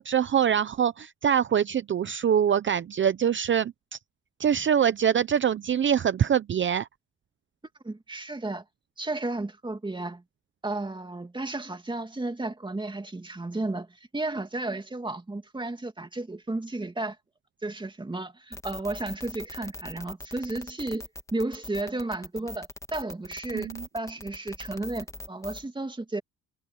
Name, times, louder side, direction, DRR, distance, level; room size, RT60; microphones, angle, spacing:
voice 1, 0.0-4.0 4.4-6.9 23.5-23.9, right 8 dB, 40° right, 0.7 m, -24 dB
voice 2, 7.8-8.6 9.0-10.2 10.6-17.2 17.6-21.1 21.3-23.7 23.9-26.2, right 2 dB, 15° right, 2.5 m, -33 dB
sound 1, 18.5-25.6, left 2 dB, 10° left, 1.8 m, -41 dB
cardioid pair, 90°, 30 cm